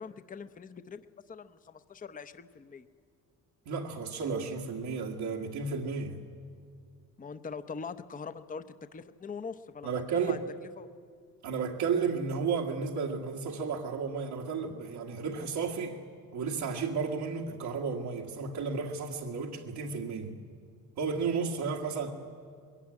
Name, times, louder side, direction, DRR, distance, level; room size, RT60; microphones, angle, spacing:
voice 1, 0.0-2.9 7.2-8.6 8.9-10.4 10.8-10.9, left 5 dB, 20° left, 11 dB, 0.7 m, -42 dB
voice 2, 3.7-6.2 9.8-10.4 11.4-16.0 16.3-20.4 21.0-22.1, right 5 dB, 80° right, -2 dB, 2.0 m, -33 dB
21.5 x 17.0 x 9.7 m, 2.1 s
cardioid pair, 110°, 38 cm